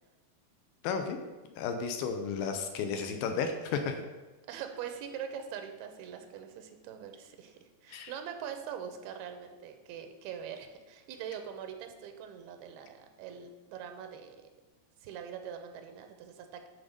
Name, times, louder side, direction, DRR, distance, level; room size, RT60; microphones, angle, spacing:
voice 1, 0.8-1.2 1.5-4.0 7.9-8.1, left 5 dB, 80° left, 6 dB, 2.4 m, -33 dB
voice 2, 4.5-14.4 15.0-16.7, right 8 dB, 90° right, 6 dB, 2.7 m, -43 dB
9.5 x 4.0 x 6.5 m, 1.2 s
omnidirectional pair, 4.3 m